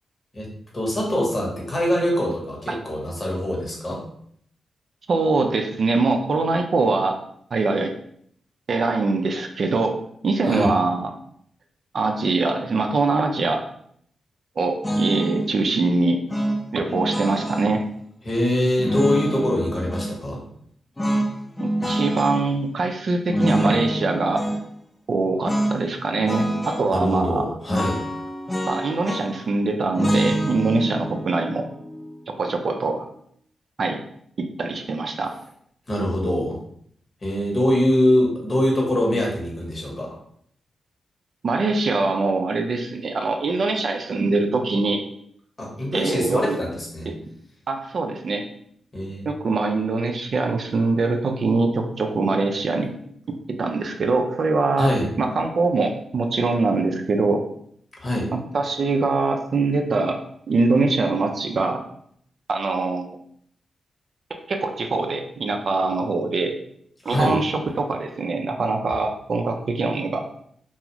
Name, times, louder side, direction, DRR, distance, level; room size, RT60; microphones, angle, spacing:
voice 1, 0.7-4.0 10.4-10.7 18.2-20.4 26.9-28.0 35.9-36.6 37.2-40.1 45.6-47.1 48.9-49.3 54.8-55.1 58.0-58.3 67.0-67.4, left 1 dB, 45° left, -2 dB, 1.1 m, -23 dB
voice 2, 5.1-7.2 7.5-7.9 8.7-10.0 10.2-11.1 11.9-13.6 14.6-16.2 16.7-17.8 21.6-24.4 25.1-27.5 28.7-31.7 32.4-33.1 33.8-34.0 34.4-35.3 41.4-45.0 45.9-46.6 47.1-47.2 47.7-48.4 49.2-52.9 53.5-54.9 55.2-57.4 58.5-60.2 60.5-61.8 62.5-63.2 64.5-66.6 67.1-70.2, right 3 dB, 60° right, 4 dB, 0.4 m, -23 dB
sound 1, 14.8-15.5 16.3-17.8 18.8-20.2 21.0-22.5 23.3-24.6 25.4-25.8 26.1-26.9 27.7-29.5 30.0-33.0, right 1 dB, 25° left, 0.5 m, -26 dB
2.4 x 2.4 x 2.9 m, 0.66 s
supercardioid pair, 40°, 0 cm